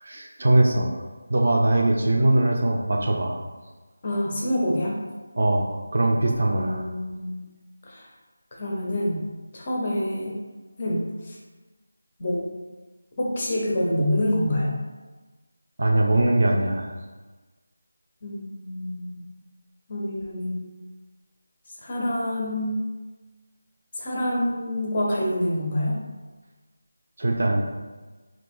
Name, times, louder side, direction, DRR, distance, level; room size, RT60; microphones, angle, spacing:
voice 1, 0.0-1.0 1.3-3.4 5.4-6.8 15.8-16.9 27.2-27.6, right 1 dB, 45° right, 0 dB, 0.4 m, -21 dB
voice 2, 4.0-5.0 6.5-7.5 7.9-8.1 8.5-9.2 9.5-10.3 10.8-11.4 12.2-12.5 13.2-14.8 18.2-19.2 19.9-20.6 21.8-22.7 24.0-26.0, left 1 dB, 25° left, -3 dB, 0.5 m, -27 dB
2.7 x 2.5 x 3.5 m, 1.3 s
figure-of-eight pair, 175°, 0 cm